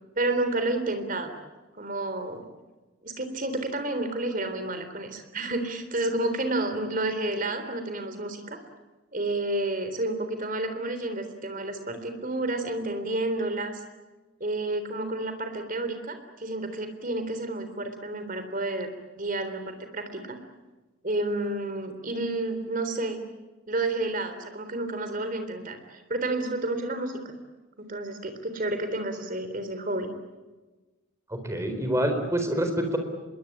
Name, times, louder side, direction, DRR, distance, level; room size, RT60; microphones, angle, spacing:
voice 1, 0.2-1.3 1.7-2.4 3.0-8.6 9.1-13.8 14.4-20.4 21.0-23.2 23.7-27.3 27.8-30.1, right 2 dB, 40° right, 8 dB, 3.6 m, -30 dB
voice 2, 31.3-33.0, equal, 15° right, 6 dB, 4.1 m, -26 dB
26.0 x 22.0 x 8.8 m, 1.2 s
head